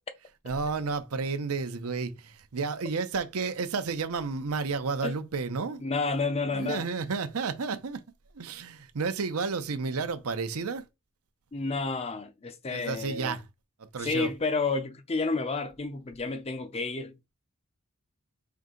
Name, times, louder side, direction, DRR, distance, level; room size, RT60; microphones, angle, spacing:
voice 1, 0.4-5.8 6.5-8.0 8.3-10.8 12.7-13.4 13.9-14.3, right 4 dB, 80° right, 0.7 m, -31 dB
voice 2, 5.8-6.9 11.5-13.4 14.0-17.2, left 3 dB, 30° left, 0.5 m, -30 dB
4.6 x 2.7 x 3.8 m
head